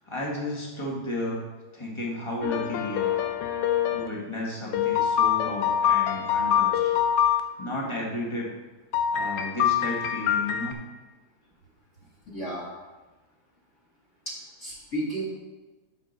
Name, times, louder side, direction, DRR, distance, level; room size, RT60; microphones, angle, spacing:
voice 1, 0.0-1.4 1.7-3.2 3.9-6.9 7.6-8.5 9.1-10.7, left 1 dB, 15° left, -3 dB, 1.4 m, -33 dB
sound 1, 2.4-4.1 4.7-7.4 8.9-10.7, left 9 dB, 85° left, 1.7 m, -24 dB
voice 2, 12.3-12.7 14.3-15.3, right 1 dB, 35° left, -6 dB, 1.8 m, -33 dB
8.1 x 5.3 x 6.4 m, 1.2 s
omnidirectional pair, 2.4 m